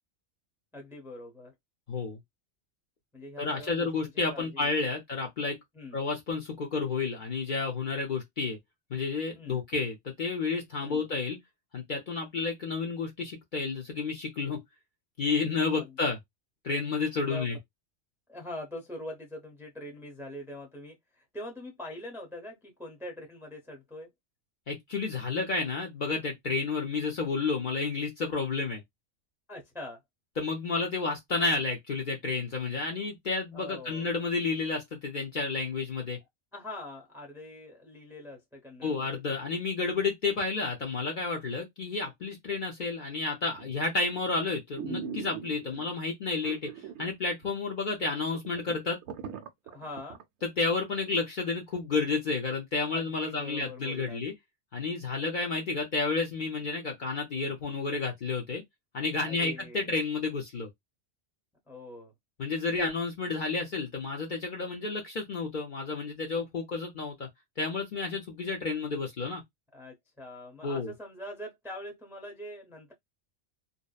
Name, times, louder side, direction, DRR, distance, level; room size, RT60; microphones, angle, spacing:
voice 1, 0.7-1.5 3.1-3.9 4.3-4.7 5.7-6.0 9.3-9.6 10.8-11.1 15.7-16.0 17.2-17.5 18.3-24.1 29.5-30.0 33.5-34.1 36.5-39.4 45.6-45.9 49.7-50.2 52.8-54.2 59.2-59.9 61.7-62.1 69.7-72.9, left 1 dB, 5° right, 0.5 m, -43 dB
voice 2, 1.9-2.2 3.4-5.6 5.9-8.6 8.9-11.4 11.7-14.6 15.2-16.2 16.6-17.6 24.7-28.8 30.4-36.2 38.8-46.7 47.0-49.0 50.6-54.3 54.7-58.6 58.9-60.7 62.4-67.3 67.6-69.4 70.6-70.9, left 4 dB, 50° left, 0.7 m, -31 dB
sound 1, 43.6-43.9 44.4-44.5 44.7-45.8 46.4-47.1 47.4-47.5 48.0-48.1 48.3-50.2 50.7-50.8, right 6 dB, 70° right, 0.8 m, -39 dB
2.8 x 2.1 x 2.3 m
omnidirectional pair, 1.2 m